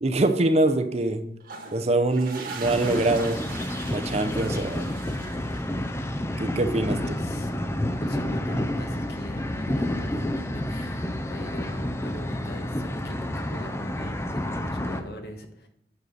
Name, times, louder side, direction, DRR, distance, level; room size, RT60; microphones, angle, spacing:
voice 1, 0.0-1.2 1.7-3.4 3.9-4.9 6.4-7.0, right 2 dB, 35° right, 8 dB, 0.6 m, -24 dB
sound 1, 1.4-6.0, right 4 dB, 55° right, 1.5 m, -41 dB
sound 2, 2.6-15.0, left 1 dB, 15° left, 0.5 m, -29 dB
voice 2, 7.0-7.5 8.0-15.7, left 1 dB, 60° left, 4 dB, 1.3 m, -42 dB
9.2 x 6.6 x 4.1 m, 0.74 s
head